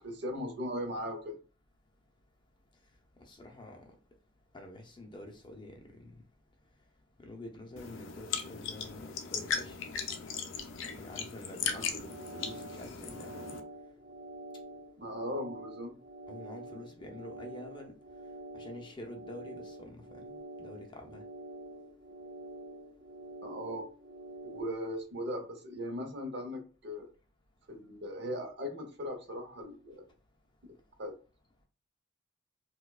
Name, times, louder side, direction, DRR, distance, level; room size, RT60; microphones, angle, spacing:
voice 1, 0.0-1.4 11.6-11.9 15.0-15.9 23.4-23.9 24.5-27.1 27.7-30.0 31.0-31.1, equal, 60° right, 0.8 m, -38 dB
voice 2, 3.3-3.8 4.5-6.1 7.2-9.8 10.8-13.6 16.3-17.9 18.5-21.2, left 1 dB, 25° left, 0.5 m, -47 dB
sound 1, 7.8-13.6, left 6 dB, 70° left, 0.5 m, -38 dB
sound 2, 11.8-24.6, right 1 dB, 35° right, 0.5 m, -47 dB
4.3 x 2.3 x 2.3 m
head